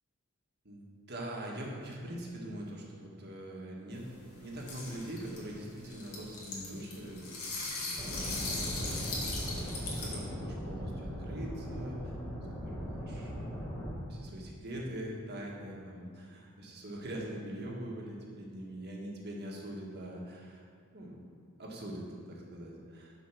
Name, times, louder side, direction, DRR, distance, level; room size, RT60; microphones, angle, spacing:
voice 1, 0.6-7.3 7.7-12.1 12.6-20.6 20.9-21.2 21.6-23.1, right 1 dB, 50° right, -2 dB, 1.6 m, -43 dB
sound 1, 3.9-10.2, left 3 dB, 80° left, 2.2 m, -39 dB
sound 2, 8.0-13.9, equal, 10° left, 1.4 m, -39 dB
10.0 x 5.1 x 6.2 m, 2.3 s
head